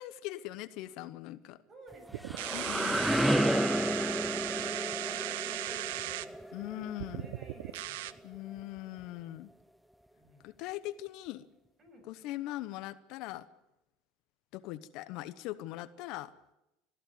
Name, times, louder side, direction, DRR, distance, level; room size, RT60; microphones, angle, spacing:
voice 1, 0.0-1.6 2.5-3.0 6.5-7.3 8.2-9.5 10.4-11.5 12.0-13.5 14.5-16.3, left 15 dB, 65° left, 15 dB, 0.9 m, -41 dB
voice 2, 1.7-6.6 7.1-8.3 10.1-10.5 11.8-12.1, right 2 dB, 35° right, 6 dB, 7.3 m, -54 dB
sound 1, 1.9-7.7, equal, ahead, 0.6 m, -32 dB
sound 2, 2.1-6.3 7.0-8.1, right 16 dB, 80° right, 0.8 m, -37 dB
19.5 x 14.5 x 9.3 m, 0.91 s
supercardioid pair, 95°, 0 cm